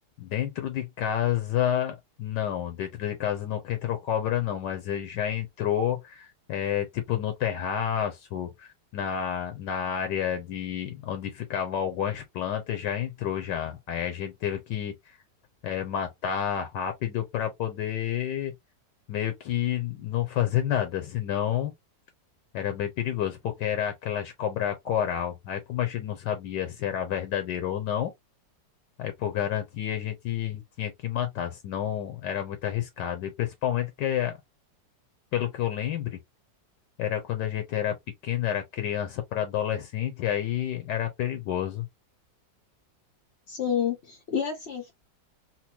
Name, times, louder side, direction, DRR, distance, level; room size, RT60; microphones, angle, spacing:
voice 1, 0.2-14.9 15.6-18.5 19.1-21.7 22.5-28.1 29.0-34.4 35.3-36.2 37.0-38.0 38.2-41.9, left 10 dB, 75° left, 1.3 m, -29 dB
voice 2, 43.5-44.9, left 8 dB, 60° left, 0.7 m, -29 dB
4.2 x 2.1 x 2.8 m
omnidirectional pair, 1.9 m